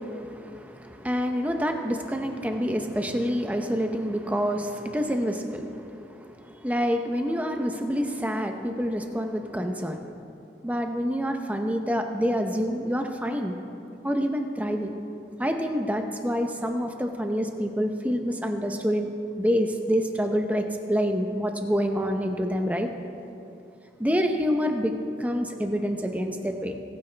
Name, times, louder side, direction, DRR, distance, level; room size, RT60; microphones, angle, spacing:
voice 1, 0.0-10.1 10.6-13.5 14.0-14.9 15.4-20.6 20.9-22.9 24.0-24.9 25.2-26.7, equal, 10° right, 5 dB, 0.7 m, -27 dB
25.5 x 9.7 x 3.4 m, 2.7 s
head